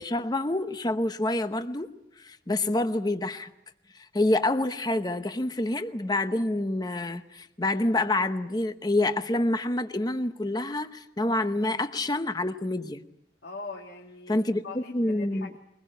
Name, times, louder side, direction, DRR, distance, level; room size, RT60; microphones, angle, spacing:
voice 1, 0.0-1.9 2.2-3.5 4.1-13.0 14.3-15.5, left 2 dB, 20° left, 9 dB, 0.8 m, -27 dB
voice 2, 13.4-15.6, left 3 dB, 80° left, 0 dB, 2.4 m, -42 dB
23.0 x 21.0 x 8.9 m, 0.85 s
head